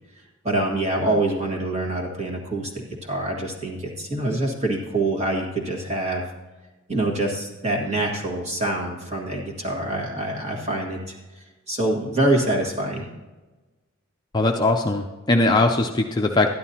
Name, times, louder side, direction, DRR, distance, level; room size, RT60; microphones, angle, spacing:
voice 1, 0.4-6.2 6.9-13.1, right 2 dB, 30° right, -1 dB, 1.7 m, -25 dB
voice 2, 14.3-16.5, left 2 dB, 20° left, 2 dB, 0.4 m, -20 dB
12.5 x 11.0 x 2.8 m, 1.2 s
head